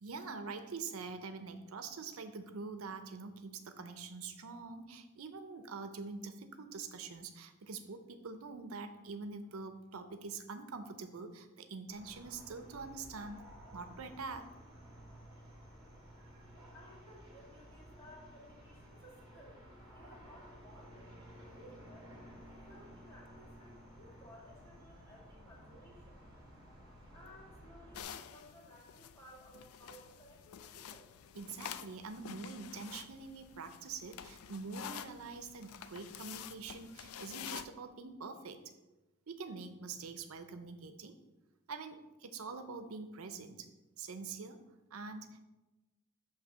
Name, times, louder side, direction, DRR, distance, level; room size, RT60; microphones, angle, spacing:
voice 1, 0.0-13.4 13.7-14.5 31.3-38.6 39.3-41.2 41.7-43.7 44.0-44.6 44.9-45.4, right 4 dB, 80° right, 8 dB, 0.6 m, -45 dB
sound 1, 11.9-28.0, equal, 20° right, 1.9 m, -55 dB
voice 2, 16.7-22.3 22.6-26.5 27.1-31.1, equal, 10° left, -5 dB, 2.0 m, -58 dB
sound 2, 27.9-37.7, left 9 dB, 85° left, 0.4 m, -49 dB
8.1 x 2.8 x 6.1 m, 1.1 s
head